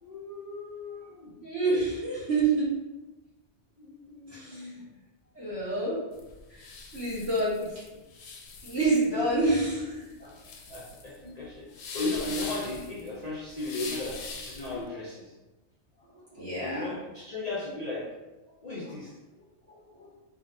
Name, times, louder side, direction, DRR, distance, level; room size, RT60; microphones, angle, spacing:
voice 1, 0.0-1.4 3.8-4.9 7.6-7.7 9.1-9.2 9.7-10.4 10.7-15.4 16.6-18.1 18.6-19.2, left 2 dB, 45° left, -5 dB, 0.6 m, -36 dB
voice 2, 1.4-2.7 4.3-4.7 5.3-6.0 6.5-7.8 8.6-9.8 16.1-17.0 19.9-20.1, right 2 dB, 60° right, -10 dB, 1.9 m, -28 dB
sound 1, 6.1-14.8, left 4 dB, 70° left, 0.8 m, -42 dB
4.1 x 2.9 x 2.6 m, 1.1 s
omnidirectional pair, 1.2 m